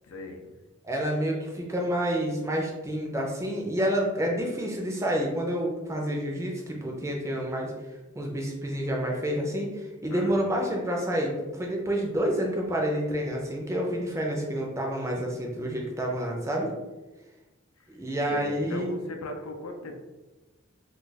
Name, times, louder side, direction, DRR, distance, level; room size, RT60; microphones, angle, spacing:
voice 1, 0.0-0.4 10.1-10.4 17.8-17.9 18.3-19.9, left 2 dB, 85° left, 4 dB, 0.5 m, -37 dB
voice 2, 0.8-7.7 8.1-16.7 17.9-18.9, equal, 15° right, -1 dB, 0.4 m, -29 dB
2.3 x 2.3 x 3.9 m, 1.1 s
head